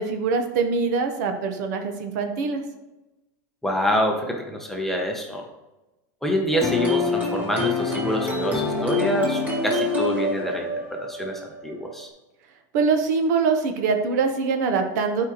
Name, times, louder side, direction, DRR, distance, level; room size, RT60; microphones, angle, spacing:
voice 1, 0.0-2.6 12.7-15.3, right 5 dB, 65° right, 6 dB, 1.0 m, -23 dB
voice 2, 3.6-5.4 6.2-12.1, equal, 5° left, 0 dB, 0.8 m, -26 dB
sound 1, 6.5-12.0, left 2 dB, 15° right, 1.6 m, -26 dB
11.0 x 4.8 x 3.0 m, 1.0 s
supercardioid pair, 160°, 10 cm